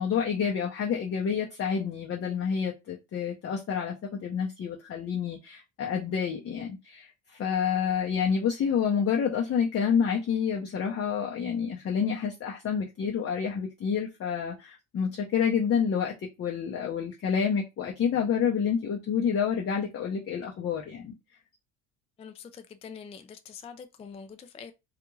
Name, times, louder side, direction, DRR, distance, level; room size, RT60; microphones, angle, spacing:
voice 1, 0.0-21.1, left 7 dB, 35° left, 0.7 m, -28 dB
voice 2, 22.2-24.7, left 6 dB, 15° left, 0.3 m, -45 dB
2.4 x 2.4 x 3.0 m
supercardioid pair, 80°, 38 cm